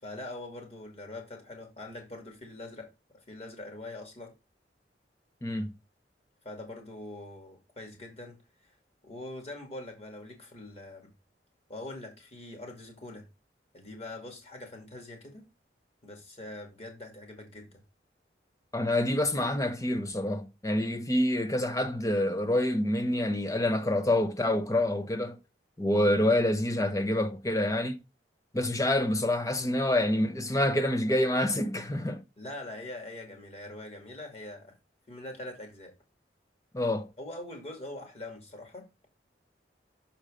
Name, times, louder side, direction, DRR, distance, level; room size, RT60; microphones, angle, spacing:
voice 1, 0.0-2.9 3.3-4.3 6.4-8.7 9.0-11.1 11.7-13.3 13.7-15.5 16.0-17.8 32.4-34.8 35.1-35.9 37.2-38.9, left 2 dB, 35° left, 2.3 m, -43 dB
voice 2, 5.4-5.7 18.7-25.4 25.8-28.0 28.5-32.2 36.7-37.1, left 1 dB, 20° left, 0.6 m, -27 dB
6.7 x 4.3 x 4.9 m
head